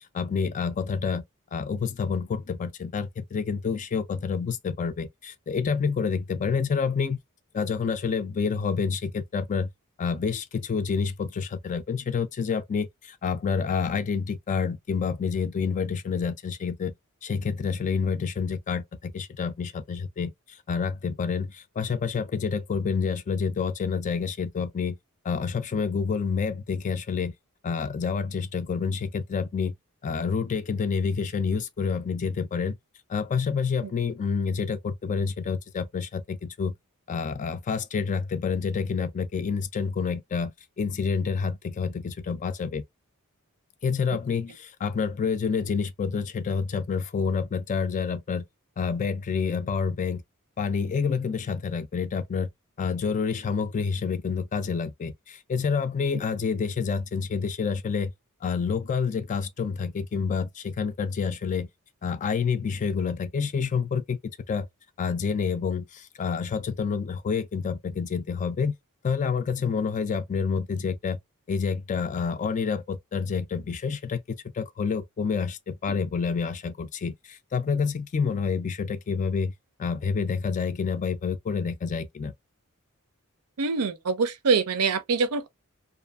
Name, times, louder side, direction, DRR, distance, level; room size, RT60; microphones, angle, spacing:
voice 1, 0.1-1.2 1.5-7.2 7.5-9.7 10.0-16.9 17.2-25.0 25.2-27.3 27.6-29.7 30.0-32.8 33.1-36.7 37.1-40.5 40.8-42.8 43.8-48.4 48.8-50.2 50.6-52.5 52.8-58.1 58.4-61.7 62.0-64.2 64.5-64.7 65.0-68.7 69.0-71.2 71.5-79.5 79.8-82.3, left 5 dB, 35° left, 0.3 m, -28 dB
voice 2, 83.6-85.5, right 4 dB, 90° right, 0.6 m, -24 dB
2.6 x 2.4 x 2.3 m
head